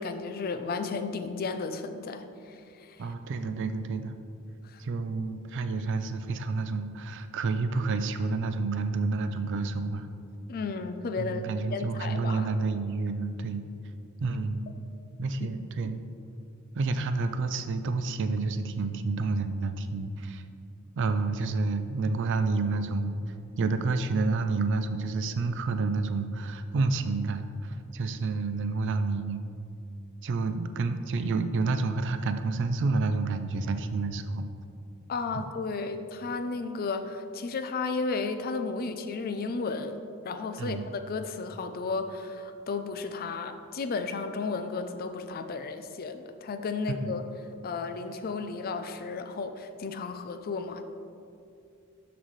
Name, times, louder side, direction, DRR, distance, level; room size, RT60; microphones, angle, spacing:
voice 1, 0.0-2.3 2.8-3.0 4.7-4.8 10.5-12.5 15.4-15.5 35.1-47.2 47.6-50.8, left 4 dB, 45° left, 8 dB, 0.4 m, -33 dB
voice 2, 3.0-4.1 4.8-10.1 11.2-13.6 14.2-14.7 15.2-16.0 16.7-20.4 21.0-23.1 23.6-29.4 30.2-34.5 35.3-35.4 40.6-40.9 46.9-47.1, right 3 dB, 60° right, 9 dB, 0.4 m, -29 dB
12.0 x 4.1 x 3.2 m, 2.5 s
head